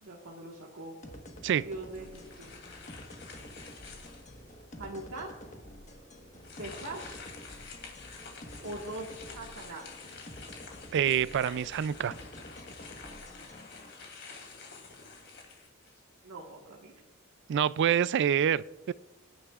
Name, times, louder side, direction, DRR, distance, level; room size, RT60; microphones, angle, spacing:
voice 1, 0.0-1.0 1.6-2.5 4.8-5.3 6.6-7.2 8.6-9.8 16.2-16.9, right 2 dB, 80° right, -3 dB, 1.5 m, -42 dB
sound 1, 1.0-13.9, equal, 35° left, 1.3 m, -49 dB
doblando papel, 1.9-4.5 5.0-5.1 6.4-16.2, left 4 dB, 60° left, 2.8 m, -49 dB
voice 2, 10.9-12.1 17.5-18.9, right 9 dB, 55° right, 20 dB, 0.3 m, -26 dB
25.0 x 10.0 x 2.4 m, 1.0 s
head